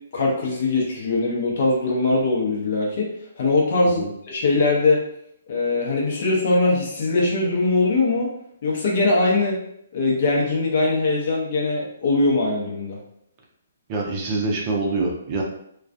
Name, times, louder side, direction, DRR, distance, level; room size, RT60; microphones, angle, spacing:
voice 1, 0.1-5.0 5.5-8.3 8.6-9.6 9.9-13.0, left 2 dB, 50° left, -2 dB, 0.7 m, -21 dB
voice 2, 13.9-15.4, right 3 dB, 30° right, -1 dB, 0.5 m, -25 dB
2.4 x 2.2 x 2.5 m, 0.71 s
figure-of-eight pair, 130°, 0 cm